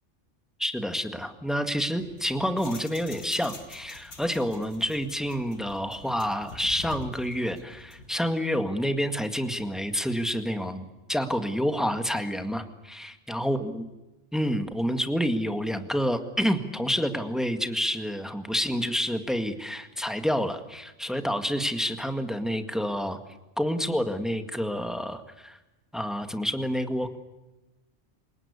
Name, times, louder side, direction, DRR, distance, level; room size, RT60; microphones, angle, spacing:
voice 1, 0.6-13.9 14.3-23.2 23.6-25.6 25.9-27.2, equal, ahead, 8 dB, 1.8 m, -28 dB
sound 1, 2.0-8.1, left 3 dB, 70° left, 2.6 m, -46 dB
28.5 x 18.5 x 8.4 m, 1.1 s
omnidirectional pair, 1.2 m